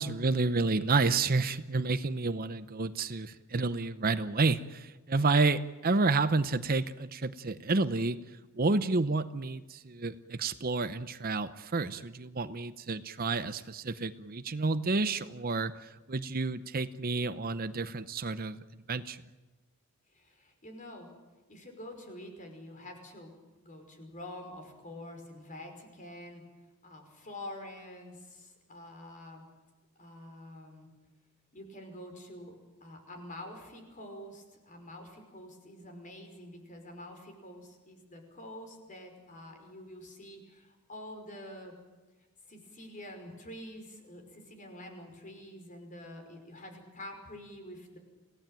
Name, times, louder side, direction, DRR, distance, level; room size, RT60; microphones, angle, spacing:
voice 1, 0.0-8.2 8.5-18.6 18.9-19.2, right 3 dB, 40° right, 12 dB, 0.8 m, -30 dB
voice 2, 20.1-21.1 21.5-23.3 23.6-26.4 26.8-29.4 30.0-30.9 31.5-41.8 42.4-48.0, left 1 dB, 35° left, 5 dB, 5.4 m, -47 dB
27.5 x 17.5 x 9.0 m, 1.2 s
head